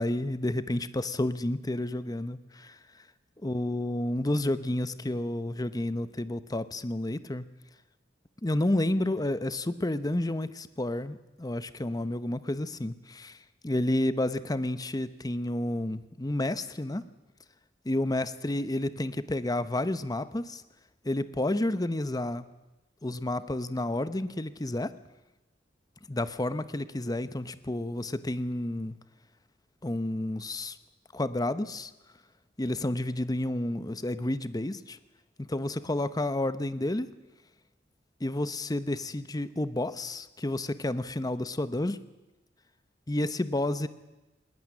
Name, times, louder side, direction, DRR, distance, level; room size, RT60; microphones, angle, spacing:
voice 1, 0.0-2.8 3.4-7.5 8.4-13.4 13.6-17.0 17.8-20.6 21.0-22.5 23.0-24.9 26.1-29.0 29.8-30.8 31.1-31.9 32.6-35.0 35.4-37.1 38.2-42.0 43.1-43.9, left 1 dB, 20° left, 13 dB, 0.8 m, -30 dB
19.5 x 19.0 x 9.8 m, 1.1 s
head